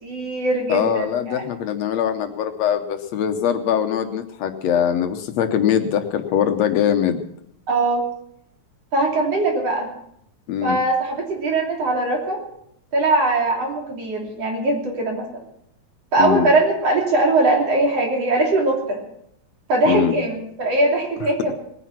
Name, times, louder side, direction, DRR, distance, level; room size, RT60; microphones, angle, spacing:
voice 1, 0.0-1.4 7.7-8.0 8.9-9.9 10.6-12.4 12.9-15.3 16.1-19.0 19.7-21.5, right 2 dB, 55° right, 0 dB, 4.2 m, -21 dB
voice 2, 0.7-7.2 10.5-10.8 16.2-16.5 19.9-20.2 21.2-21.5, left 9 dB, 70° left, 7 dB, 2.0 m, -22 dB
19.5 x 9.9 x 6.0 m, 0.72 s
omnidirectional pair, 3.3 m